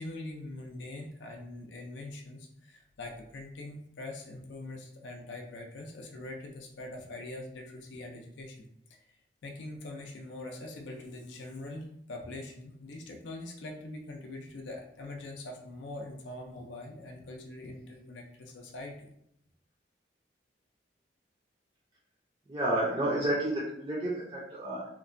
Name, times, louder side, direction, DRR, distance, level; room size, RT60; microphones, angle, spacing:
voice 1, 0.0-8.6 8.9-9.2 9.4-19.1, left 2 dB, 75° left, 1 dB, 0.4 m, -43 dB
voice 2, 22.5-24.9, right 1 dB, 25° right, -6 dB, 0.4 m, -30 dB
2.9 x 2.1 x 2.5 m, 0.74 s
head